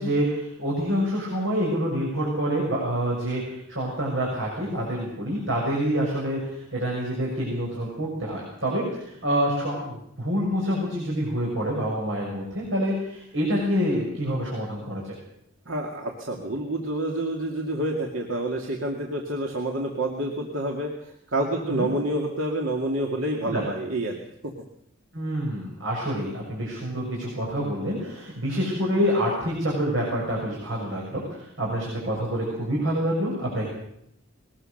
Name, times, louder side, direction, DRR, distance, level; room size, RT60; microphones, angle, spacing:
voice 1, 0.0-15.1 21.6-21.9 23.4-23.6 25.1-33.6, equal, 65° right, -3 dB, 6.8 m, -27 dB
voice 2, 15.7-24.2 24.4-24.5, right 1 dB, 90° right, 1 dB, 2.4 m, -28 dB
21.5 x 19.0 x 6.6 m, 0.74 s
head